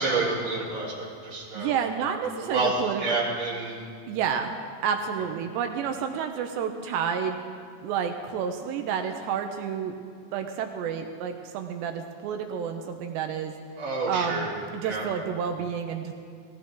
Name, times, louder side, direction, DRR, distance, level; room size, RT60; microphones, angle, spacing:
voice 1, 0.0-1.7 2.4-3.9 13.8-14.5 14.8-15.0, right 3 dB, 30° right, -8 dB, 4.1 m, -29 dB
voice 2, 1.5-3.2 4.1-4.6 4.8-7.4 7.8-9.9 10.3-13.5 14.1-14.5 14.7-16.1, right 7 dB, 80° right, 5 dB, 2.7 m, -30 dB
20.0 x 15.0 x 3.8 m, 2.1 s
omnidirectional pair, 5.3 m